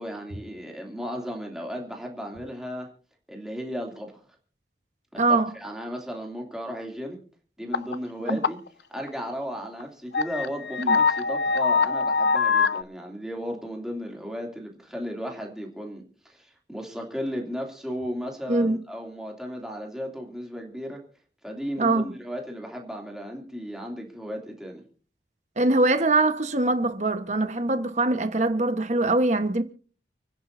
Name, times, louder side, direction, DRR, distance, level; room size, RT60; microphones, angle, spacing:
voice 1, 0.0-2.9 3.3-4.1 5.1-7.2 7.6-8.6 8.9-21.0 21.4-24.8, equal, 5° right, 2.8 m, -35 dB
voice 2, 5.2-5.5 8.2-8.4 10.8-11.0 18.5-18.8 21.8-22.1 25.6-29.6, right 2 dB, 40° right, 1.2 m, -23 dB
sound 1, 7.7-8.0 8.3-8.7 9.1-9.2 9.8-9.9 10.1-12.8, left 5 dB, 70° left, 0.6 m, -23 dB
29.5 x 10.0 x 2.7 m
head